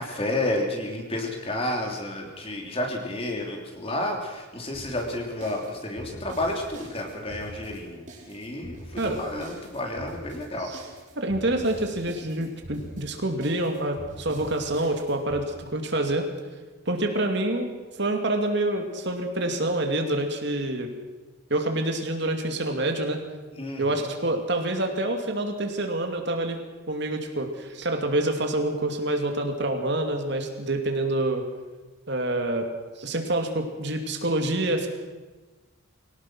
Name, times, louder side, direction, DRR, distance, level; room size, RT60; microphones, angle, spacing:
voice 1, 0.0-10.7 23.5-24.0, left 1 dB, 30° left, 2 dB, 3.3 m, -31 dB
sound 1, 4.7-15.4, right 1 dB, 40° right, 5.1 m, -44 dB
voice 2, 11.2-16.3 16.9-17.7 18.0-20.9 21.5-23.2 23.8-26.6 26.9-31.4 32.1-32.7 33.0-34.9, right 1 dB, 60° right, 4 dB, 2.6 m, -27 dB
23.0 x 18.0 x 6.3 m, 1.3 s
head